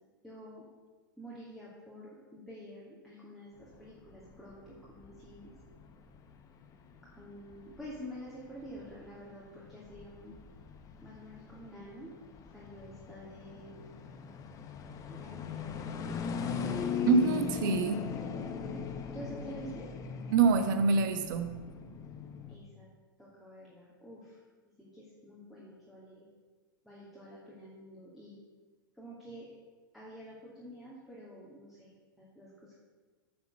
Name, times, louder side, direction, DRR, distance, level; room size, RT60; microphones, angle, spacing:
voice 1, 0.2-0.6 1.2-5.5 7.1-10.4 11.0-12.1 12.5-13.8 15.0-16.7 18.7-18.8 19.1-19.9 22.5-22.9 23.2-24.4 24.8-26.2 26.8-28.4 29.0-29.5 29.9-31.9 32.2-32.8, equal, ahead, -7 dB, 2.7 m, -48 dB
sound 1, 3.6-22.5, left 6 dB, 30° left, 1.2 m, -40 dB
voice 2, 17.1-18.1 20.3-21.5, right 5 dB, 60° right, 8 dB, 1.3 m, -26 dB
9.6 x 7.2 x 6.8 m, 1.4 s
hypercardioid pair, 105°, 11 cm